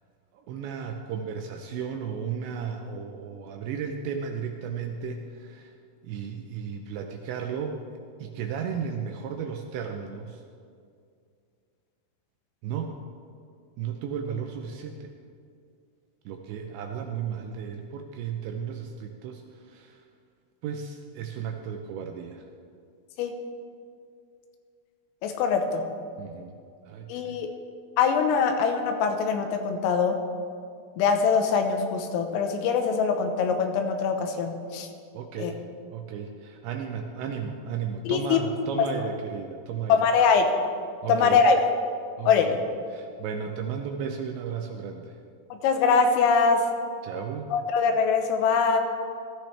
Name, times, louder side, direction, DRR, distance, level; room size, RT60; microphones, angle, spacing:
voice 1, 0.3-5.8 6.0-7.8 8.2-10.4 12.6-12.9 13.8-15.1 16.3-20.0 20.6-22.4 26.2-26.6 26.9-27.4 35.1-35.6 35.9-40.0 41.0-41.4 42.2-42.6 42.9-45.2 47.0-47.5, right 7 dB, 80° right, 4 dB, 2.6 m, -34 dB
voice 2, 25.2-25.8 27.1-27.5 28.0-30.2 31.0-34.9 35.4-35.5 38.1-38.4 39.9-40.5 41.1-41.7 42.3-42.5 45.6-46.6 47.5-48.8, left 5 dB, 85° left, 5 dB, 3.7 m, -23 dB
18.5 x 13.5 x 3.3 m, 2.3 s
omnidirectional pair, 5.8 m